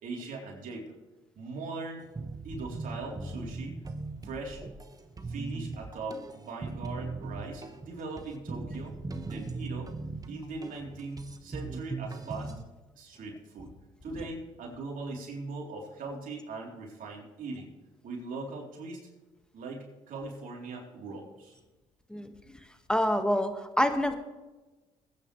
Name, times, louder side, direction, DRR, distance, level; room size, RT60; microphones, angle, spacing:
voice 1, 0.0-0.9 1.3-2.1 2.4-3.8 4.2-4.6 5.3-9.0 9.2-9.9 10.3-12.6 12.9-13.8 14.0-17.7 18.0-19.1 19.5-21.6, right 3 dB, 65° right, -1 dB, 3.9 m, -40 dB
sound 1, 2.2-12.6, right 3 dB, 25° right, 1.4 m, -39 dB
voice 2, 22.9-23.5 23.8-24.1, left 1 dB, 5° left, 6 dB, 1.9 m, -25 dB
21.0 x 9.6 x 3.4 m, 1.2 s
supercardioid pair, 65°, 15 cm